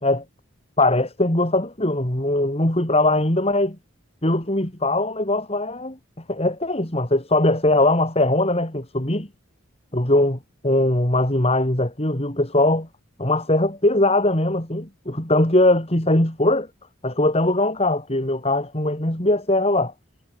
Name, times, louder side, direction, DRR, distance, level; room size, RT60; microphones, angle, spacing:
voice 1, 0.8-3.8 4.2-6.0 6.3-9.3 9.9-12.9 13.2-16.7 17.0-19.9, left 1 dB, 30° left, 3.3 m, -20 dB
head